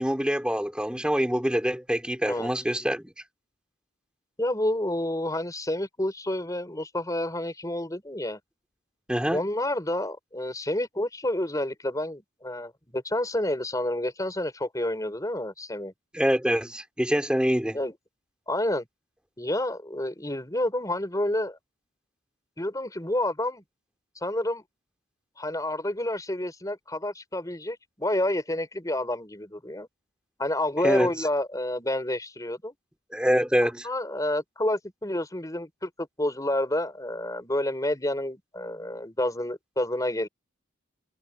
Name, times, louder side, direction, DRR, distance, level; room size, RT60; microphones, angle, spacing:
voice 1, 0.0-3.1 9.1-9.5 16.1-17.8 30.8-31.1 33.1-33.9, equal, 5° right, 3.5 m, -25 dB
voice 2, 4.4-8.4 9.3-15.9 17.7-17.9 18.5-18.9 19.4-21.6 22.6-23.6 24.1-24.6 25.4-29.9 30.4-32.7 33.8-40.3, left 1 dB, 15° left, 4.5 m, -29 dB
head